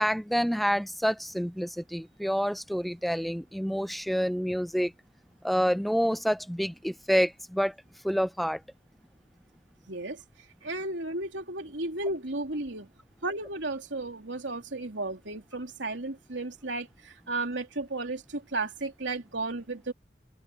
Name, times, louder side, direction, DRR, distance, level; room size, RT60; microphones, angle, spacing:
voice 1, 0.0-4.9 5.4-7.8 8.0-8.6, equal, ahead, 0.6 m, -28 dB
voice 2, 9.9-10.2 10.6-12.9 13.2-19.9, right 2 dB, 85° right, 3.2 m, -34 dB
open air
head